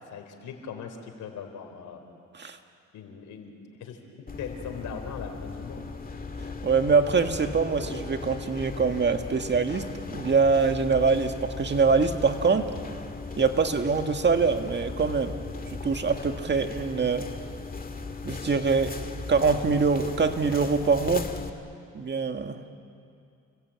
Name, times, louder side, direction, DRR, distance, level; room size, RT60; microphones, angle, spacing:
voice 1, 0.0-2.0 2.9-3.5 3.8-5.8, left 6 dB, 80° left, 5 dB, 4.2 m, -40 dB
sound 1, 4.3-21.5, left 4 dB, 30° left, 2.0 m, -37 dB
voice 2, 6.6-12.7 13.4-15.4 15.7-17.3 18.2-19.0 19.3-21.3 21.9-22.7, right 5 dB, 35° right, 6 dB, 1.8 m, -24 dB
30.0 x 22.0 x 8.8 m, 2.4 s
cardioid pair, 90°, 30 cm